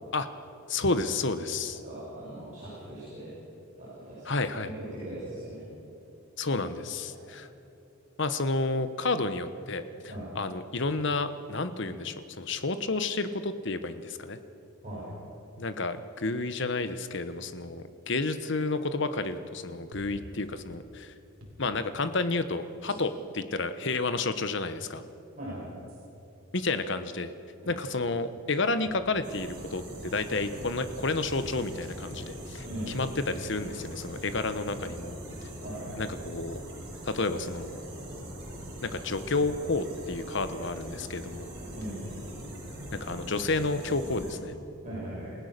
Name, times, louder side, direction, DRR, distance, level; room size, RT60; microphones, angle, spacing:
voice 1, 0.7-1.8 4.2-4.7 6.4-7.5 8.2-14.4 15.6-21.1 21.6-25.0 26.5-27.3 27.7-35.2 36.0-36.6 37.0-37.8 38.8-41.5 42.9-44.5, left 3 dB, 55° left, 11 dB, 1.0 m, -31 dB
voice 2, 1.8-3.3 3.8-4.4 4.6-4.7 5.0-5.6 7.2-7.3 10.1-10.3 14.8-15.0 22.9-23.0 25.4-25.7 27.6-27.7 32.6-32.9 35.6-36.0 41.7-42.0 44.8-45.4, right 1 dB, 35° right, -10 dB, 7.2 m, -39 dB
sound 1, 19.9-20.3 21.4-21.6 22.9-23.4 24.4-24.5 25.9-26.1 28.8-29.1 30.3-30.6 31.8-32.2 33.3-33.4 34.8-35.0, equal, 70° right, 4.1 m, -50 dB
sound 2, 29.2-44.4, right 1 dB, 50° right, 7.6 m, -41 dB
28.5 x 17.0 x 6.7 m, 2.8 s
head